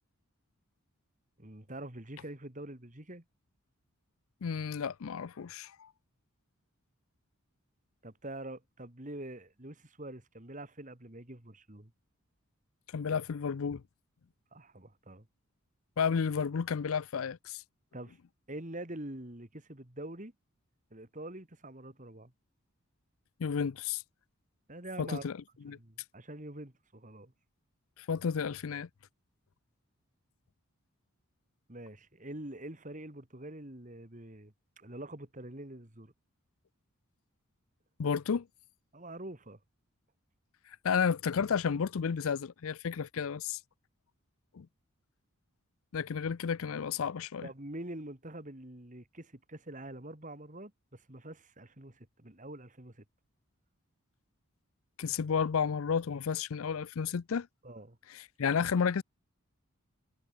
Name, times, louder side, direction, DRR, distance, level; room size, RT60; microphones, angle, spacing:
voice 1, 1.4-3.2 8.0-11.9 14.5-15.3 17.9-18.2 18.5-20.3 20.9-22.3 24.7-25.3 25.7-27.3 31.7-36.1 38.9-39.6 47.4-53.0 57.6-58.0, right 1 dB, 35° right, 2.5 m, -45 dB
voice 2, 4.4-5.9 12.9-13.8 16.0-17.6 23.4-24.0 25.0-25.4 25.6-25.8 28.0-28.9 38.0-38.5 40.8-43.6 44.5-44.7 45.9-47.5 55.0-57.5 58.1-59.0, left 6 dB, 70° left, 0.5 m, -32 dB
head